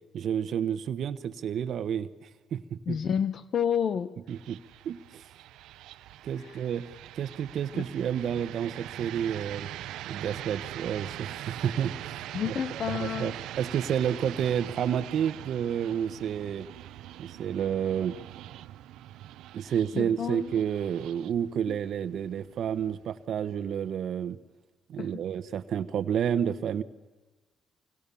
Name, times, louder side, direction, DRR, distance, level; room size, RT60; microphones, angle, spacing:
voice 1, 0.1-3.0 4.3-4.6 4.8-5.2 6.2-6.9 7.1-9.7 10.1-16.7 17.2-18.2 19.5-24.4 24.9-26.8, right 8 dB, 65° right, 13 dB, 1.1 m, -30 dB
voice 2, 2.9-4.1 6.4-6.6 7.7-7.9 12.3-13.3 19.9-20.5 21.7-21.8 25.0-25.2, left 8 dB, 60° left, 13 dB, 1.0 m, -30 dB
sound 1, 4.3-23.2, right 13 dB, 90° right, 0.8 m, -42 dB
27.5 x 24.5 x 7.1 m, 1.2 s
cardioid pair, 90°, 0 cm